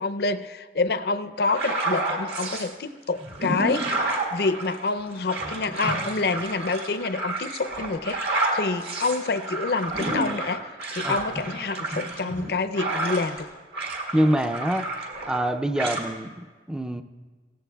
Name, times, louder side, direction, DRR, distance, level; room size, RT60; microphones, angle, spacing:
voice 1, 0.0-10.6 10.9-13.5, left 3 dB, 60° left, 10 dB, 0.5 m, -27 dB
sound 1, 1.4-2.7 3.2-13.4 13.7-15.5 15.8-16.0, right 2 dB, 60° right, 1.9 m, -30 dB
voice 2, 14.1-14.9 15.3-17.0, right 1 dB, 5° right, 9 dB, 0.4 m, -25 dB
18.0 x 15.0 x 2.3 m, 1.5 s
head